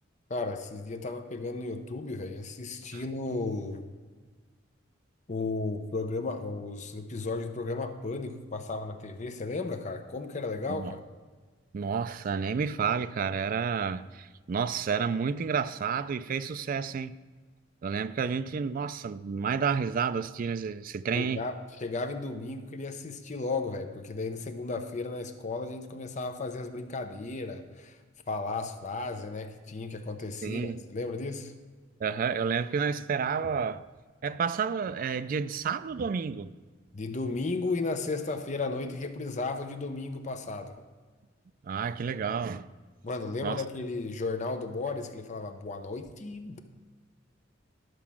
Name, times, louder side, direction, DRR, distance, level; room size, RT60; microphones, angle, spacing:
voice 1, 0.3-3.9 5.3-11.0 21.1-28.0 28.3-31.5 36.9-40.7 43.0-46.6, left 3 dB, 40° left, 0.6 m, -34 dB
voice 2, 11.7-17.1 17.8-21.4 30.4-30.8 32.0-33.8 34.2-36.5 41.6-42.7 43.4-43.6, right 6 dB, 45° right, 0.3 m, -30 dB
12.0 x 4.7 x 7.2 m
head